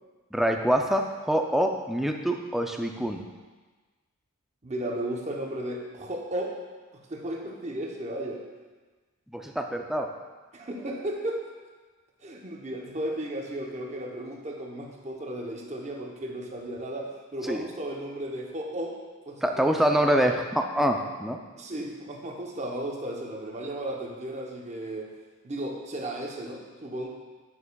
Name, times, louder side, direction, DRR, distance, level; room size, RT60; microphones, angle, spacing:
voice 1, 0.3-3.2 9.3-10.1 17.5-17.7 19.4-21.4, equal, ahead, 3 dB, 0.3 m, -25 dB
voice 2, 4.6-6.5 7.1-8.4 10.5-11.4 12.2-18.9 19.3-20.1 21.6-25.1 25.4-27.1, right 1 dB, 30° right, 0 dB, 0.8 m, -34 dB
8.6 x 6.8 x 2.3 m, 1.3 s
head